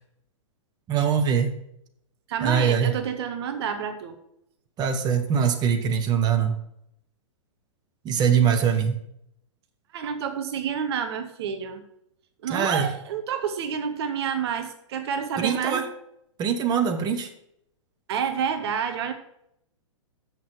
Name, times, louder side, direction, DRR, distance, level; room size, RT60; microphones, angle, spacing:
voice 1, 0.9-1.6 2.4-2.9 4.8-6.5 8.0-9.0 12.5-12.9 15.4-15.9 16.4-17.3, right 7 dB, 25° right, 6 dB, 1.2 m, -22 dB
voice 2, 2.3-4.2 9.9-11.8 12.4-15.9 18.1-19.1, right 7 dB, 55° right, 8 dB, 1.1 m, -29 dB
7.8 x 6.6 x 7.7 m, 0.76 s
figure-of-eight pair, 110°, 16 cm